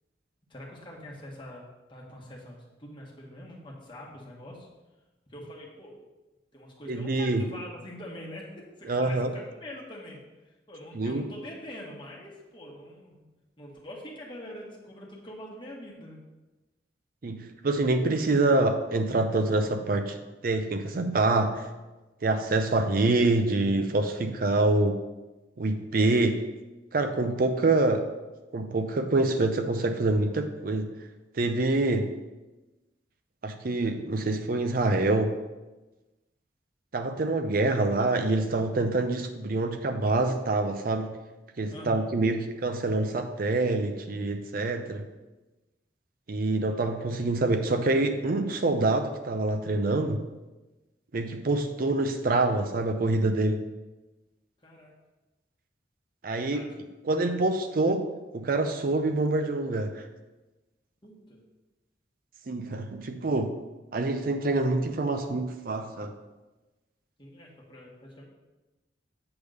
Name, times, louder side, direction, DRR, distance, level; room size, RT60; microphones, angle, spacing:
voice 1, 0.5-4.7 5.3-6.0 6.5-10.2 10.7-13.2 13.6-16.2 41.7-42.0 54.6-54.9 56.3-56.8 57.1-57.9 61.0-61.4 67.2-68.2, left 1 dB, 25° left, -3 dB, 1.5 m, -44 dB
voice 2, 6.9-7.4 8.9-9.3 11.0-11.2 17.2-20.2 20.4-21.6 22.2-25.0 25.6-26.5 26.9-28.1 28.5-30.9 31.3-32.1 33.4-35.4 36.9-41.2 41.6-45.1 46.3-50.2 51.1-53.6 56.2-56.6 57.1-58.0 58.3-60.0 62.5-63.6 63.9-66.1, right 2 dB, 55° right, 7 dB, 0.5 m, -26 dB
8.0 x 3.5 x 6.5 m, 1.1 s
head